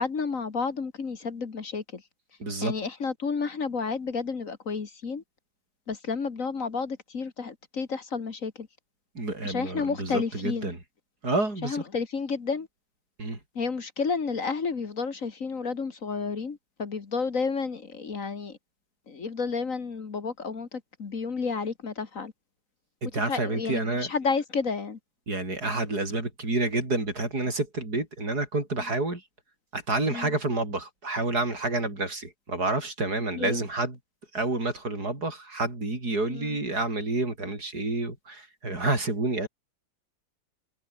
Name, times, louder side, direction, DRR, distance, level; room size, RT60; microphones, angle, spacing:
voice 1, 0.0-2.0 2.6-5.2 5.9-8.7 9.4-10.7 11.6-12.7 13.6-18.6 19.1-22.3 23.1-25.0 30.1-30.3 33.4-33.6 36.3-36.6, left 5 dB, 55° left, 2.2 m, -31 dB
voice 2, 2.4-2.7 9.2-10.8 11.2-11.8 13.2-13.4 23.0-24.1 25.3-29.2 29.7-34.0 34.3-39.5, right 2 dB, 75° right, 7.0 m, -29 dB
omnidirectional pair, 1.7 m